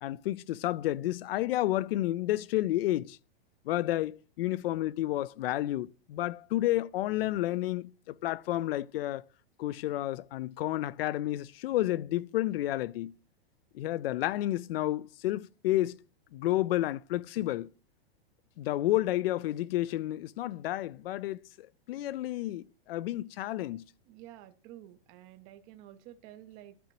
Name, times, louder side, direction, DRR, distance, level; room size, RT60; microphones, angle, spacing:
voice 1, 0.0-3.2 3.7-9.2 9.6-13.1 13.7-16.0 16.3-17.7 18.6-23.8, left 15 dB, 65° left, 0.5 m, -31 dB
voice 2, 24.1-26.9, right 13 dB, 25° right, 0.4 m, -51 dB
13.5 x 4.9 x 3.0 m
supercardioid pair, 150°, 31 cm